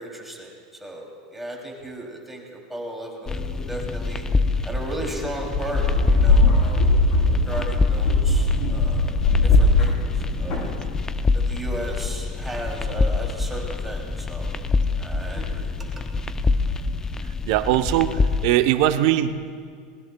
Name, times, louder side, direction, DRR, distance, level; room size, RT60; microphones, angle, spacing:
voice 1, 0.0-4.2 4.6-7.0 7.3-9.1 9.4-10.7 11.3-14.5 15.0-16.1, right 1 dB, 5° right, -1 dB, 2.8 m, -35 dB
sound 1, 3.3-18.4, left 3 dB, 15° left, 0.4 m, -26 dB
sound 2, 5.5-11.0, left 2 dB, 55° left, 3.3 m, -20 dB
voice 2, 17.5-19.3, right 13 dB, 65° right, 9 dB, 0.7 m, -20 dB
25.5 x 20.0 x 2.3 m, 2.2 s
supercardioid pair, 125°, 3 cm